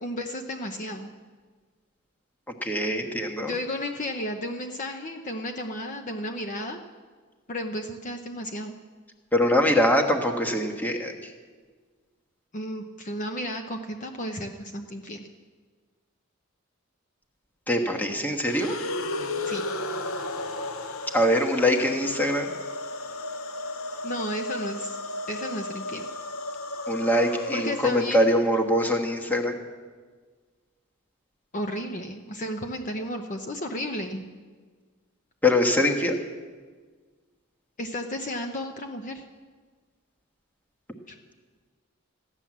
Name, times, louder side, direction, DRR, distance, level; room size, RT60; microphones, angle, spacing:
voice 1, 0.0-1.1 3.4-6.8 7.5-8.8 12.5-15.3 19.5-19.6 24.0-25.0 25.3-26.1 27.5-28.3 31.5-34.2 37.8-39.2 41.1-41.2, equal, 40° left, 4 dB, 0.8 m, -33 dB
voice 2, 2.6-3.5 9.3-11.3 17.7-18.7 21.1-22.5 26.9-29.5 35.4-36.2, left 1 dB, 10° left, 2 dB, 1.3 m, -23 dB
sound 1, 18.4-28.6, left 2 dB, 90° left, 0.9 m, -34 dB
15.0 x 10.5 x 7.3 m, 1.5 s
head